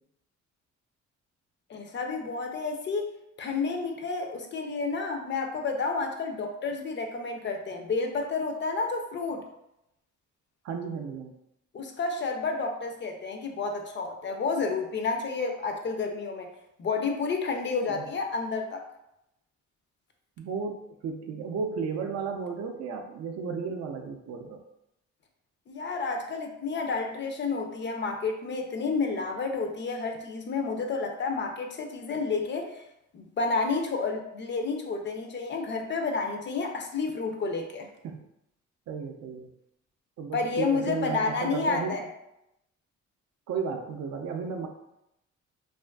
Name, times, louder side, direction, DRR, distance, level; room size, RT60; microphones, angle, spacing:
voice 1, 1.7-3.1 3.4-9.4 11.7-16.5 16.8-18.8 25.7-32.8 33.1-37.9 40.3-42.1, left 4 dB, 40° left, 4 dB, 0.4 m, -30 dB
voice 2, 10.6-11.3 17.8-18.1 20.4-24.6 38.0-38.2 38.9-39.5 40.2-42.0 43.5-44.7, right 5 dB, 60° right, 4 dB, 0.5 m, -34 dB
2.4 x 2.4 x 2.2 m, 0.84 s
cardioid pair, 90°, 30 cm